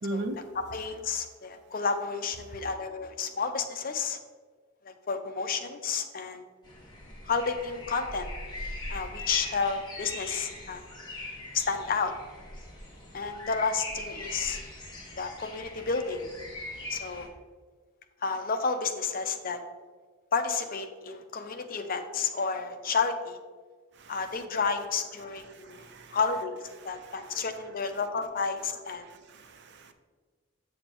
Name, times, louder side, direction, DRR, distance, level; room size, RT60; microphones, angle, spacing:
voice 1, 0.0-0.4 24.0-24.1 25.5-26.2 27.0-27.2 29.0-29.9, right 1 dB, 60° right, 8 dB, 0.6 m, -38 dB
voice 2, 0.5-4.2 4.8-6.4 7.3-8.3 8.9-10.8 11.5-12.1 13.1-14.6 15.2-16.3 16.9-17.3 18.2-19.6 20.3-23.4 24.1-25.9 26.1-29.1, left 5 dB, 45° left, 7 dB, 0.6 m, -31 dB
sound 1, 6.6-17.3, left 2 dB, 20° left, 1.5 m, -41 dB
7.7 x 7.3 x 3.0 m, 1.5 s
head